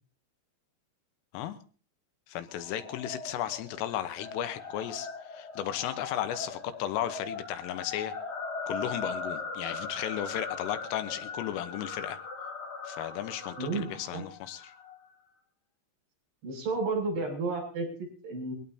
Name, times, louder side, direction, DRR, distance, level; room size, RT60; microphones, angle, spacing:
voice 1, 2.3-8.2 8.7-12.2 12.9-14.7, left 11 dB, 80° left, 10 dB, 3.6 m, -35 dB
sound 1, 2.5-15.0, left 4 dB, 45° left, 2.8 m, -40 dB
voice 2, 13.6-14.2 16.4-18.5, right 3 dB, 55° right, -1 dB, 8.5 m, -32 dB
23.0 x 17.5 x 2.8 m, 0.39 s
omnidirectional pair, 5.8 m